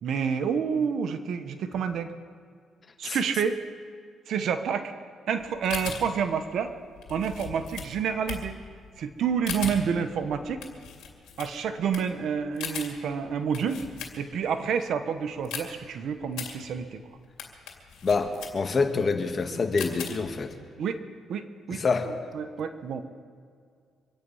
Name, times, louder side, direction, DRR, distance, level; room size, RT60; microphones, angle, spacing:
voice 1, 0.0-2.1 3.0-3.6 4.3-4.9 5.3-6.7 7.1-8.5 9.0-10.6 11.4-13.8 14.2-17.0 20.8-21.0 21.3-21.8 22.1-23.0, right 7 dB, 70° right, 9 dB, 1.2 m, -29 dB
sound 1, 5.4-14.5 14.9-20.5, left 7 dB, 85° left, 2.5 m, -40 dB
voice 2, 18.0-20.5 21.7-22.1, left 4 dB, 40° left, 5 dB, 1.8 m, -26 dB
25.0 x 9.6 x 5.6 m, 2.2 s
cardioid pair, 90°, 0 cm